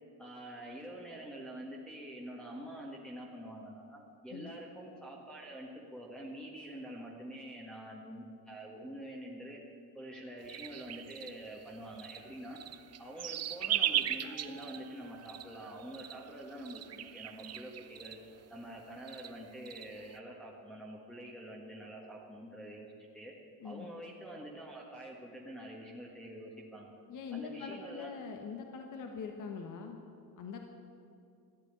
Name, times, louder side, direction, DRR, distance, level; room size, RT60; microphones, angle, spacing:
voice 1, 0.2-9.6 9.9-12.6 13.0-18.2 18.5-22.9 23.1-23.3 23.6-26.9 27.3-28.1, right 1 dB, 5° left, -4 dB, 1.6 m, -46 dB
sound 1, 10.5-18.4 18.7-18.8 19.1-20.2, right 11 dB, 45° right, 0.7 m, -38 dB
voice 2, 27.1-30.0 30.4-30.6, left 5 dB, 55° left, 3 dB, 1.3 m, -43 dB
14.0 x 9.1 x 8.8 m, 2.6 s
cardioid pair, 130°, 36 cm